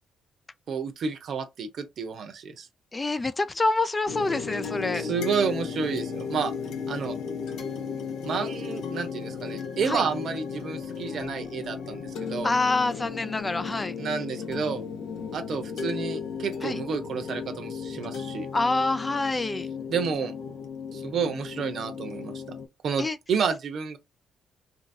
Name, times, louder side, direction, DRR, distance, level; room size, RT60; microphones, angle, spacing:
voice 1, 0.7-2.7 4.9-6.5 6.9-7.1 8.2-12.5 14.0-14.8 15.3-18.5 19.9-20.3 20.9-22.6 22.8-24.0, right 6 dB, 60° right, 0.8 m, -30 dB
voice 2, 2.9-5.1 9.9-10.0 12.4-14.0 16.6-16.8 18.5-19.7 23.0-23.2, left 3 dB, 25° left, 0.3 m, -26 dB
sound 1, 4.1-22.7, left 6 dB, 75° left, 1.0 m, -35 dB
2.8 x 2.7 x 2.6 m
cardioid pair, 90°, 0 cm